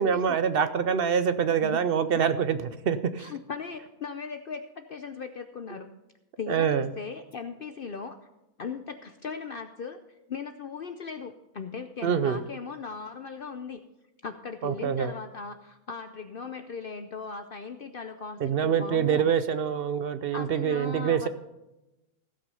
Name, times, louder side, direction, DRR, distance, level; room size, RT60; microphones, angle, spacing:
voice 1, 0.0-3.3 6.5-6.9 12.0-12.4 14.6-15.1 18.4-21.3, right 7 dB, 60° right, 12 dB, 0.6 m, -25 dB
voice 2, 3.2-5.9 6.4-8.2 8.6-10.0 10.3-13.8 14.2-19.2 20.3-21.3, left 5 dB, 55° left, 7 dB, 0.6 m, -38 dB
15.5 x 6.0 x 5.5 m, 0.96 s
omnidirectional pair, 1.5 m